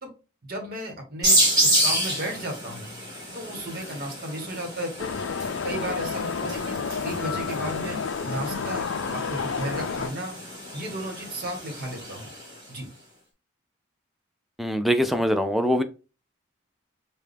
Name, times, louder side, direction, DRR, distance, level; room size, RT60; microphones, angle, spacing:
voice 1, 0.4-2.9 3.3-5.2 5.6-10.4 10.7-12.3 12.7-12.9, right 1 dB, 45° right, 1.3 m, -34 dB
sound 1, 1.2-12.6, right 1 dB, 20° right, 2.0 m, -29 dB
sound 2, 5.0-10.1, left 5 dB, 70° left, 0.4 m, -30 dB
voice 2, 14.6-15.8, equal, ahead, 0.3 m, -23 dB
4.6 x 2.3 x 3.3 m
head